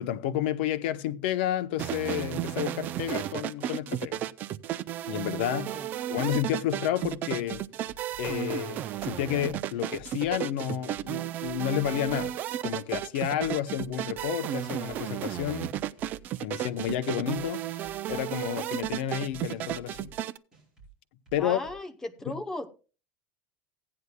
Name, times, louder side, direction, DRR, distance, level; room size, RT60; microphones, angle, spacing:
voice 1, 0.0-4.3 5.0-5.7 6.1-7.6 8.2-12.3 12.6-15.7 16.4-20.1 21.3-21.6 22.3-22.4, left 11 dB, 65° left, 0.8 m, -31 dB
sound 1, 1.8-20.4, right 12 dB, 30° right, 0.4 m, -33 dB
sound 2, 7.0-7.1 7.5-8.3 8.7-9.1 9.5-10.3 10.7-11.0 11.4-12.3 12.6-13.0 13.4-14.2 14.6-15.0 15.4-16.2 16.6-16.9 17.3-18.2 18.5-18.9 19.3-20.1 20.5-20.9 21.3-21.8, right 4 dB, 10° right, 4.7 m, -53 dB
voice 2, 21.4-22.7, left 2 dB, 10° left, 0.8 m, -36 dB
16.5 x 9.6 x 2.2 m
supercardioid pair, 170°, 6 cm